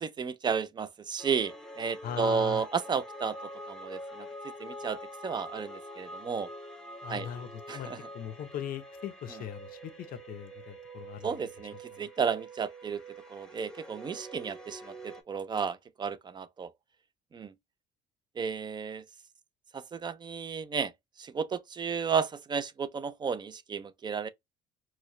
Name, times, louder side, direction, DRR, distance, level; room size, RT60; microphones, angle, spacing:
voice 1, 0.0-4.3 4.6-6.5 7.1-7.3 7.7-8.1 11.2-13.0 13.3-16.7 17.3-17.5 18.4-19.0 19.7-20.9 21.2-24.3, right 6 dB, 25° right, 0.4 m, -33 dB
sound 1, 1.2-15.2, equal, 5° left, 0.9 m, -45 dB
voice 2, 2.0-2.6 7.0-11.4 11.9-12.1, left 9 dB, 55° left, 0.6 m, -40 dB
4.6 x 2.1 x 3.0 m
cardioid pair, 135°, 18 cm